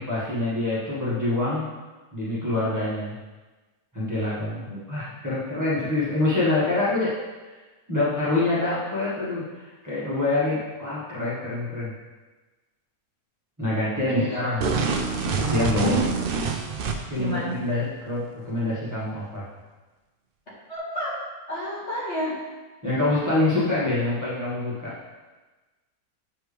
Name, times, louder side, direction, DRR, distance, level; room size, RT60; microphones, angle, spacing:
voice 1, 0.1-1.7 2.1-3.1 3.9-7.2 7.4-7.6 7.9-11.9 13.6-14.6 15.3-16.0 17.1-19.4 22.8-25.0, left 2 dB, 10° right, -10 dB, 1.6 m, -26 dB
voice 2, 14.1-14.4 15.8-16.1 17.1-17.5 20.7-21.1 21.5-22.4, right 1 dB, 50° left, -9 dB, 2.4 m, -29 dB
sound 1, 14.6-17.3, right 4 dB, 60° right, 0.6 m, -26 dB
7.7 x 4.5 x 3.4 m, 1.2 s
omnidirectional pair, 1.6 m